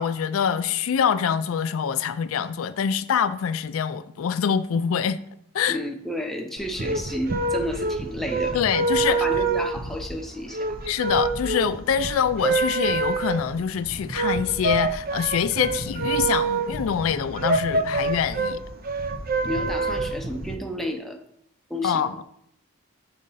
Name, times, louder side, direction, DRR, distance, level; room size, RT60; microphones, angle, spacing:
voice 1, 0.0-5.2 5.5-5.8 8.5-9.2 10.9-18.6 21.8-22.1, left 7 dB, 75° left, 0.4 m, -25 dB
voice 2, 5.7-8.6 9.1-10.8 19.4-21.2 21.7-22.1, left 1 dB, ahead, 0.6 m, -31 dB
sound 1, 6.6-20.5, right 3 dB, 45° right, 0.5 m, -26 dB
5.4 x 5.1 x 5.5 m
head